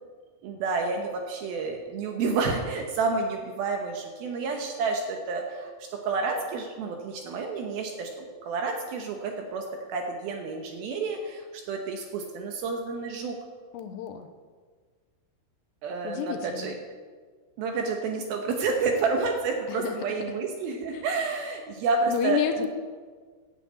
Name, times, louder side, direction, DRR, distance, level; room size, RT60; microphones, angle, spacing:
voice 1, 0.4-5.7 6.0-9.6 9.9-13.4 15.8-16.7 17.6-22.7, right 4 dB, 70° right, 3 dB, 2.5 m, -29 dB
voice 2, 13.7-14.3 16.0-16.8 19.7-20.0 20.9-21.1 22.1-22.7, left 10 dB, 80° left, 5 dB, 2.8 m, -30 dB
9.8 x 7.7 x 8.6 m, 1.6 s
omnidirectional pair, 5.2 m